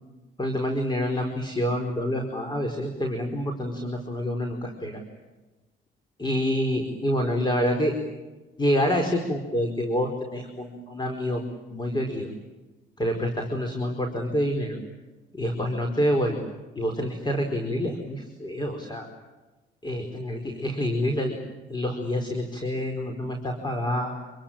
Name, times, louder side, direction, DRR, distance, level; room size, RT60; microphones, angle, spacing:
voice 1, 0.4-4.9 6.2-7.9 8.6-11.4 11.7-12.3 13.0-14.8 15.3-16.4 16.7-19.1 19.8-21.4 21.7-24.2, equal, 20° left, 3 dB, 4.9 m, -27 dB
27.0 x 23.0 x 9.0 m, 1.2 s
cardioid pair, 90°, 20 cm